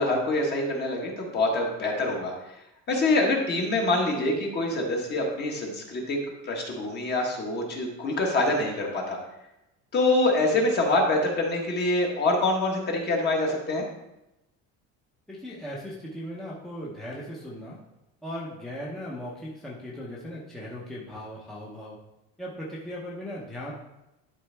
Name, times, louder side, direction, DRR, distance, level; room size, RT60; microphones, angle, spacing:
voice 1, 0.0-2.3 2.9-6.2 6.4-9.2 9.9-13.8, left 2 dB, 35° left, 0 dB, 1.5 m, -25 dB
voice 2, 15.3-17.8 18.2-22.0 22.4-23.7, equal, ahead, -6 dB, 0.8 m, -38 dB
11.0 x 4.1 x 3.5 m, 0.92 s
cardioid pair, 170°, 31 cm